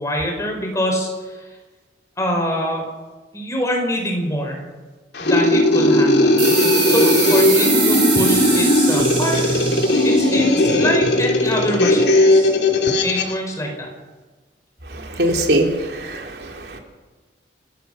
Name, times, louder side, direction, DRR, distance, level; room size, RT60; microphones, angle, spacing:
voice 1, 0.0-1.4 2.2-2.8 3.3-4.6 5.2-6.4 6.8-9.6 10.0-12.5 13.0-13.9, equal, 20° left, 1 dB, 5.2 m, -24 dB
sound 1, 5.1-13.3, left 1 dB, 70° left, 2.8 m, -17 dB
sound 2, 6.4-11.5, right 6 dB, 30° right, 3.5 m, -24 dB
voice 2, 15.2-16.8, right 1 dB, 65° right, 2 dB, 3.2 m, -21 dB
28.5 x 15.5 x 6.8 m, 1.3 s
head